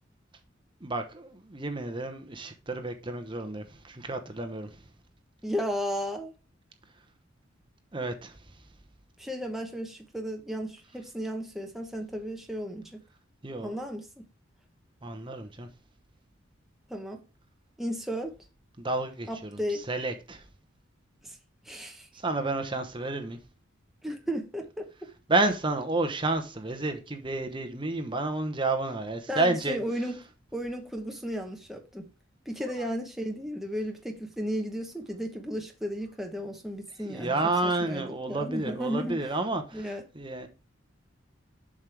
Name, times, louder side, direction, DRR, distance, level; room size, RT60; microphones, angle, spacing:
voice 1, 0.8-4.7 7.9-8.3 13.4-13.8 15.0-15.7 18.8-20.4 22.1-23.4 25.3-29.8 37.0-40.5, right 2 dB, 25° right, 0.9 m, -30 dB
voice 2, 5.4-6.3 9.2-13.0 13.6-14.2 16.9-17.2 17.8-18.3 19.3-19.8 21.2-21.4 21.7-22.1 24.0-24.9 29.3-30.2 30.5-32.1 32.5-37.4 37.6-39.3 39.7-40.0, equal, ahead, 0.9 m, -34 dB
7.4 x 6.2 x 3.3 m
head